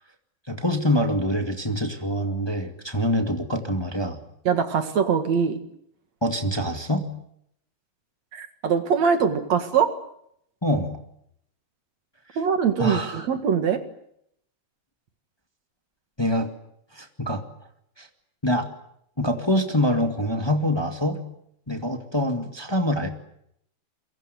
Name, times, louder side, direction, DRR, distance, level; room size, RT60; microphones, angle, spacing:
voice 1, 0.5-4.2 6.2-7.1 10.6-11.0 12.8-13.3 16.2-16.5 16.9-17.4 18.0-18.1 18.4-18.7 19.2-21.2 21.7-23.1, equal, 20° left, 5 dB, 0.7 m, -25 dB
voice 2, 4.4-5.6 8.3-10.0 12.4-13.8, right 7 dB, 55° right, 8 dB, 2.6 m, -22 dB
29.0 x 23.5 x 8.0 m, 0.74 s
omnidirectional pair, 4.3 m